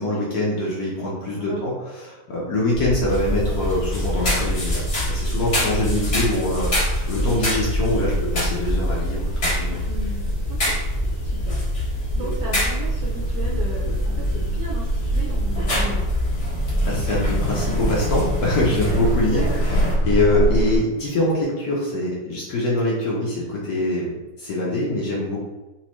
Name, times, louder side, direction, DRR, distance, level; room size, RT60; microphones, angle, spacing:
voice 1, 0.0-9.8 12.2-12.3 16.8-19.8 20.0-25.4, left 1 dB, 65° left, -5 dB, 1.0 m, -24 dB
voice 2, 1.4-1.8 5.6-5.9 9.9-10.8 11.2-11.6 12.2-16.2 19.3-19.6, right 3 dB, 75° right, -2 dB, 0.9 m, -35 dB
sound 1, 2.7-19.3, equal, 35° right, 0.5 m, -25 dB
sound 2, 3.1-19.9, left 1 dB, 40° left, 1.2 m, -30 dB
sound 3, 12.8-20.8, right 1 dB, 80° left, 1.9 m, -27 dB
4.2 x 2.3 x 2.9 m, 1.1 s
omnidirectional pair, 2.2 m